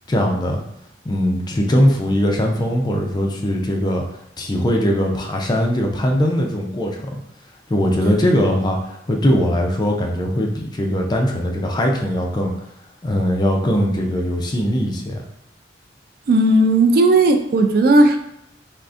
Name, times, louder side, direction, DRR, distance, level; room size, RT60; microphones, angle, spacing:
voice 1, 0.1-0.6 1.1-4.0 4.4-7.2 7.7-12.5 13.0-15.2, equal, 25° left, 1 dB, 0.4 m, -20 dB
voice 2, 16.3-18.2, right 2 dB, 55° right, 5 dB, 0.3 m, -14 dB
3.5 x 2.4 x 2.4 m, 0.77 s
head